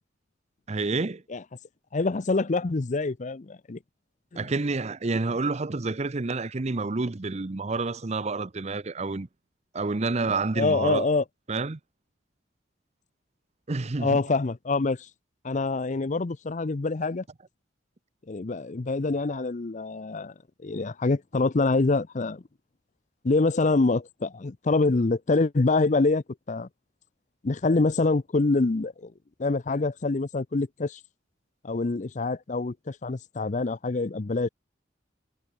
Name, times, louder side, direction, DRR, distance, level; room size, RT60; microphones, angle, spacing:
voice 1, 0.7-1.2 4.4-9.3 9.7-11.1 11.5-11.8 13.7-14.2 19.2-19.3, right 3 dB, 35° right, 0.7 m, -29 dB
voice 2, 1.9-3.8 4.3-4.5 10.6-11.2 14.0-15.0 15.4-17.2 18.3-20.3 20.6-22.4 23.2-26.7 27.4-29.1 29.4-31.0 31.6-34.5, left 3 dB, 40° left, 0.6 m, -25 dB
head